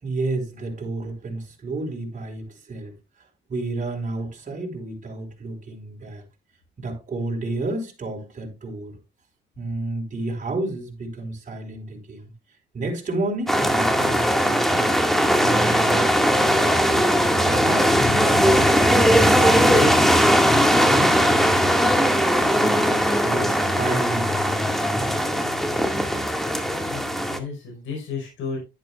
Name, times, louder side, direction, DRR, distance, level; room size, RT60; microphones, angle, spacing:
voice 1, 0.0-2.9 3.5-6.2 6.8-9.0 9.6-12.3 12.7-14.9 15.3-18.3 18.8-22.1 22.5-25.2, right 2 dB, 40° right, 4.5 m, -31 dB
sound 1, 13.5-27.4, equal, ahead, 2.0 m, -19 dB
voice 2, 26.8-28.6, left 5 dB, 75° left, 4.7 m, -33 dB
11.5 x 10.5 x 2.4 m
cardioid pair, 90°, 20 cm